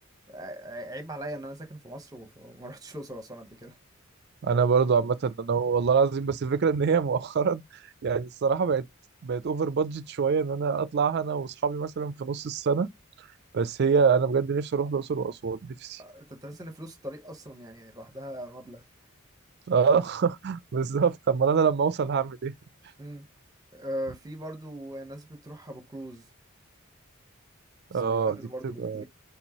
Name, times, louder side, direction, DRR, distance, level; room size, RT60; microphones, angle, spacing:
voice 1, 0.3-3.8 16.0-18.8 23.0-23.2 23.7-26.3 27.9-29.0, equal, 15° right, 0.9 m, -40 dB
voice 2, 4.4-7.6 8.0-8.9 9.2-12.9 13.5-16.0 19.7-22.5 27.9-28.4 28.6-29.0, right 6 dB, 50° right, 0.4 m, -25 dB
4.4 x 3.3 x 2.9 m
head